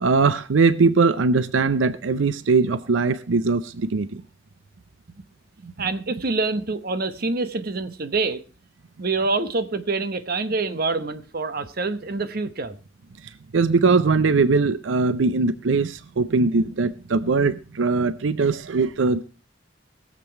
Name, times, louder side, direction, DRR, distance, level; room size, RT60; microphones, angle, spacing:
voice 1, 0.0-4.2 13.5-19.2, right 4 dB, 85° right, 0.6 m, -20 dB
voice 2, 5.6-8.4 9.0-12.8, right 3 dB, 50° right, 1.0 m, -26 dB
20.5 x 7.5 x 4.5 m
head